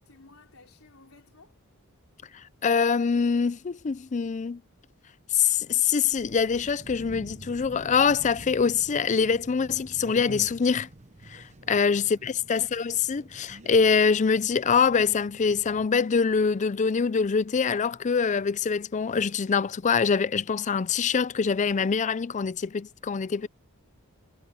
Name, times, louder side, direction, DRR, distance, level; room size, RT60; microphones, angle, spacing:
voice 1, 0.0-1.6 11.7-12.5 23.3-23.5, left 3 dB, 70° left, 4.7 m, -56 dB
voice 2, 2.3-4.6 5.3-10.9 11.3-23.5, left 6 dB, 35° left, 0.4 m, -24 dB
sound 1, 6.1-15.9, right 2 dB, 30° right, 1.0 m, -47 dB
head